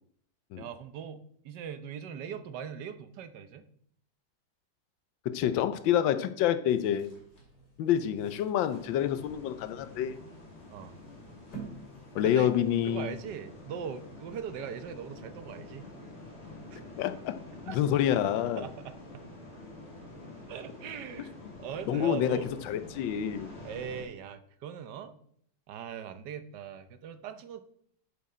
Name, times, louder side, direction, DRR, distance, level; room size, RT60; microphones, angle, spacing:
voice 1, 0.6-3.6 10.7-10.9 12.2-12.5 12.8-15.9 16.7-16.8 17.7-17.8 18.1-18.2 18.6-19.3 20.5-21.3 21.6-22.5 23.6-25.1 25.7-27.6, right 8 dB, 65° right, 11 dB, 1.4 m, -40 dB
voice 2, 5.2-7.1 7.8-10.1 12.1-13.1 17.0-17.3 17.7-18.6 21.9-22.4 22.7-23.5, left 10 dB, 75° left, 11 dB, 1.4 m, -27 dB
sound 1, 6.7-12.9, right 4 dB, 55° left, 3.4 m, -51 dB
sound 2, 8.7-24.0, left 2 dB, 35° left, 2.6 m, -48 dB
10.5 x 7.5 x 4.3 m, 0.65 s
omnidirectional pair, 2.1 m